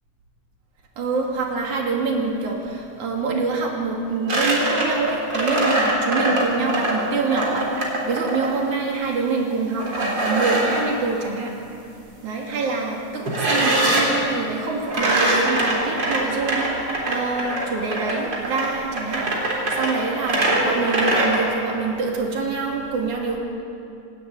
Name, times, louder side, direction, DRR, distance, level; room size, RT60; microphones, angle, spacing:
voice 1, 1.0-11.8 12.2-23.4, right 4 dB, 60° right, -1 dB, 4.1 m, -26 dB
sound 1, 4.3-8.6 9.8-10.9 13.3-14.2 14.9-21.4, right 1 dB, 30° right, 3.9 m, -23 dB
26.0 x 12.5 x 9.3 m, 2.6 s
omnidirectional pair, 3.9 m